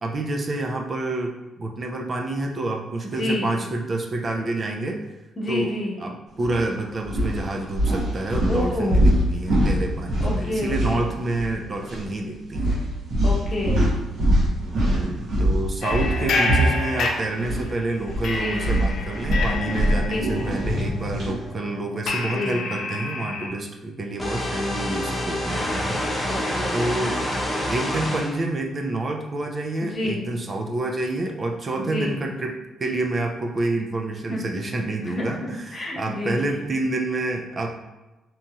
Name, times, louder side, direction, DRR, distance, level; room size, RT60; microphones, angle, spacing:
voice 1, 0.0-5.0 5.5-12.8 14.7-26.0 26.7-27.2 27.7-37.8, right 2 dB, 35° right, 2 dB, 0.3 m, -28 dB
voice 2, 3.2-3.5 5.4-5.9 8.5-9.0 10.2-11.1 13.2-13.8 18.4-18.6 20.1-20.5 22.3-22.6 26.3-26.8 29.8-30.2 31.8-32.1 34.3-34.4 35.2-35.3 35.7-36.5, left 1 dB, 35° left, -4 dB, 0.9 m, -28 dB
sound 1, 6.4-6.6 7.0-11.5 11.8-12.0 12.5-17.6 18.0-21.4, equal, 70° right, 1.1 m, -23 dB
sound 2, 15.8-17.8 18.2-23.5, left 3 dB, 70° left, 0.4 m, -29 dB
sound 3, 24.2-28.3, left 1 dB, 5° left, 0.7 m, -27 dB
2.8 x 2.7 x 2.3 m, 1.1 s
cardioid pair, 90°, 0 cm